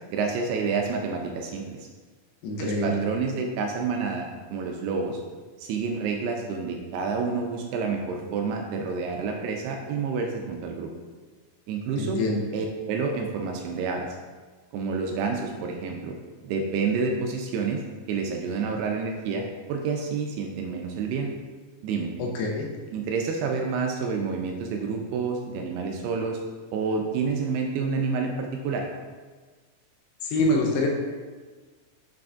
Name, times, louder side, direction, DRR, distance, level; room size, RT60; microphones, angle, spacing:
voice 1, 0.1-1.9 2.6-5.2 5.6-10.9 11.7-12.2 12.5-14.1 14.7-16.1 16.4-17.8 18.1-21.3 21.8-22.1 22.9-26.4 26.7-28.8, right 5 dB, 80° right, 2 dB, 2.4 m, -29 dB
voice 2, 2.4-3.0 12.0-12.4 22.2-22.7 30.2-30.9, left 1 dB, 80° left, -1 dB, 2.6 m, -25 dB
6.8 x 5.9 x 2.5 m, 1.4 s
omnidirectional pair, 4.9 m